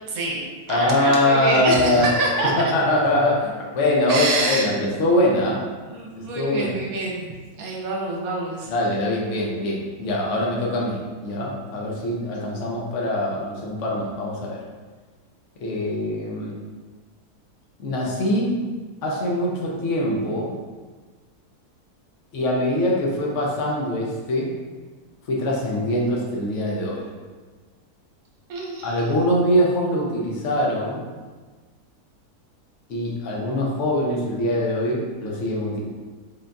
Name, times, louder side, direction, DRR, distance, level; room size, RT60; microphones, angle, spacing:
voice 1, 0.1-2.7 4.1-4.7 5.9-7.3 7.6-8.7 28.5-29.0, right 2 dB, 70° right, -2 dB, 1.1 m, -26 dB
voice 2, 0.7-2.1 2.6-5.6 6.3-6.8 8.7-14.6 15.6-16.6 17.8-18.5 19.0-20.5 22.3-24.5 25.3-27.1 28.8-31.0 32.9-35.8, left 1 dB, 60° left, -2 dB, 0.9 m, -23 dB
3.9 x 3.7 x 2.2 m, 1.4 s
omnidirectional pair, 1.7 m